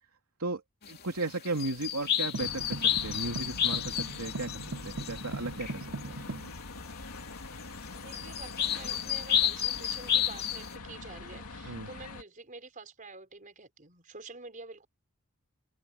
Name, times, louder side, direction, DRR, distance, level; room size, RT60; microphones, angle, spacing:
sound 1, 0.8-6.5 6.8-10.8, left 9 dB, 45° left, 2.7 m, -32 dB
voice 1, 0.9-5.8 6.1-6.2 11.6-11.9, right 2 dB, 85° right, 2.9 m, -35 dB
sound 2, 2.3-6.5, right 3 dB, 70° right, 0.8 m, -40 dB
sound 3, 2.4-12.2, left 3 dB, 90° left, 2.7 m, -44 dB
voice 2, 7.9-14.9, right 3 dB, 35° right, 4.7 m, -48 dB
open air
head